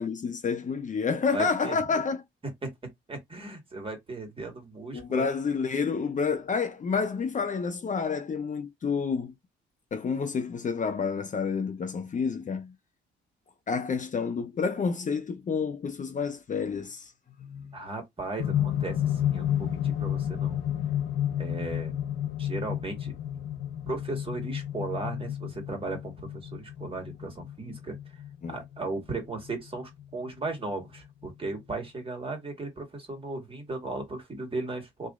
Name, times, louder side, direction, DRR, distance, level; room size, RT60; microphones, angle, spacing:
voice 1, 0.0-2.2 4.9-9.3 9.9-12.7 13.7-17.1 17.4-17.7 28.4-28.6, left 5 dB, 40° left, 0.7 m, -29 dB
voice 2, 1.3-1.8 2.6-2.7 3.1-5.3 17.7-20.6 21.4-21.9 22.4-23.1 23.9-27.9 28.5-35.1, right 3 dB, 25° right, 1.8 m, -36 dB
sound 1, 18.4-30.5 31.5-31.6, left 10 dB, 80° left, 0.8 m, -31 dB
3.0 x 2.6 x 3.7 m
cardioid pair, 90°, 20 cm